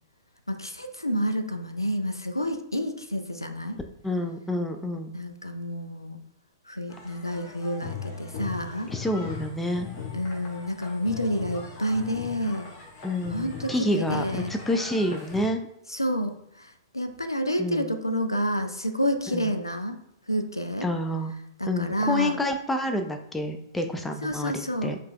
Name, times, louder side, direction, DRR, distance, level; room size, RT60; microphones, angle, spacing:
voice 1, 0.5-3.8 5.1-6.2 6.7-8.9 10.1-12.7 13.3-14.5 15.9-20.0 20.3-20.9 21.6-22.4 24.2-24.9, equal, 85° left, 8 dB, 0.4 m, -29 dB
voice 2, 4.0-5.1 8.9-9.9 13.0-14.2 14.5-15.6 17.6-17.9 19.3-19.5 20.8-21.3 21.7-25.0, left 1 dB, 5° left, 6 dB, 0.4 m, -28 dB
sound 1, 6.9-15.5, left 5 dB, 40° left, 0.8 m, -39 dB
7.1 x 2.4 x 2.3 m, 0.81 s
figure-of-eight pair, 105°, 2 cm